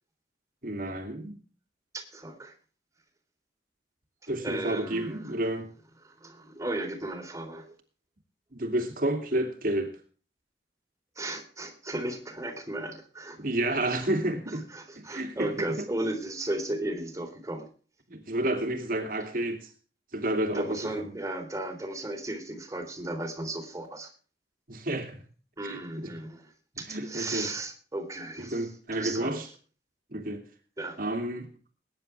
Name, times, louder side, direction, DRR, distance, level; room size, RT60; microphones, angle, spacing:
voice 1, 0.6-1.4 4.3-5.7 8.5-9.9 13.4-14.6 15.0-15.8 18.1-19.7 20.1-21.1 24.7-25.2 25.6-26.1 26.9-27.5 28.4-29.5 30.1-30.4 31.0-31.5, right 1 dB, 50° right, 2.7 m, -30 dB
voice 2, 1.9-2.5 4.4-5.4 6.0-7.8 11.1-13.4 13.9-14.0 14.5-17.7 20.5-24.1 25.6-29.4 30.8-31.0, right 1 dB, 20° right, 3.5 m, -35 dB
21.5 x 10.5 x 3.4 m
head